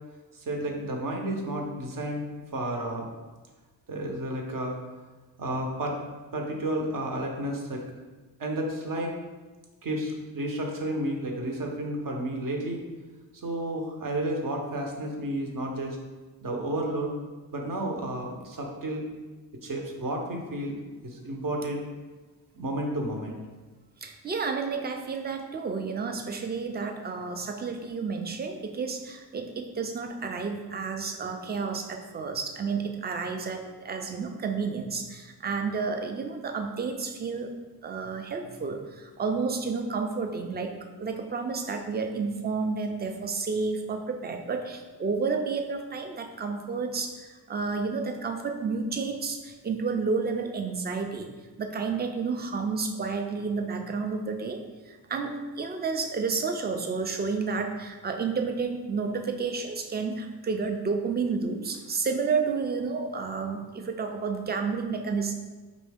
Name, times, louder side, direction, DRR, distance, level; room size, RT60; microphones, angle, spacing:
voice 1, 0.3-2.2 2.5-3.1 3.9-4.8 5.4-6.0 6.3-7.8 8.4-9.1 9.8-12.8 13.4-16.0 16.4-17.1 17.5-19.1 19.6-21.8 22.5-23.4, right 1 dB, 55° right, 1 dB, 0.9 m, -31 dB
voice 2, 24.0-37.5 37.8-40.7 41.0-51.3 51.6-54.6 54.9-65.3, right 4 dB, 25° right, 4 dB, 0.4 m, -31 dB
5.1 x 2.7 x 3.4 m, 1.3 s
cardioid pair, 100°, 40 cm